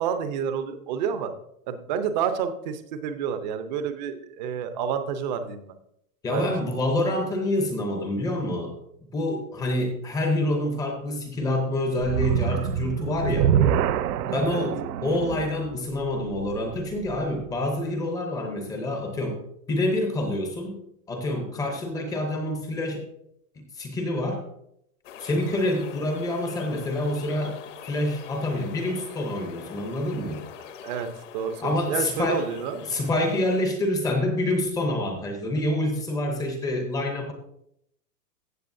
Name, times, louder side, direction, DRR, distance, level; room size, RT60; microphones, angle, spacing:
voice 1, 0.0-1.3 1.7-5.7 6.3-6.5 14.3-14.7 25.5-25.6 30.8-31.1 31.3-32.9, right 7 dB, 30° right, 9 dB, 0.6 m, -29 dB
voice 2, 6.2-8.7 9.1-13.5 14.3-19.4 19.7-20.8 21.1-23.0 23.7-24.4 25.2-27.6 27.8-30.4 31.6-32.4 32.9-37.3, left 1 dB, 10° left, 4 dB, 0.7 m, -27 dB
sound 1, 12.0-17.3, right 9 dB, 80° right, 0.7 m, -26 dB
sound 2, 25.0-33.7, left 8 dB, 50° left, 1.0 m, -44 dB
14.5 x 7.2 x 2.6 m, 0.76 s
hypercardioid pair, 155°, 47 cm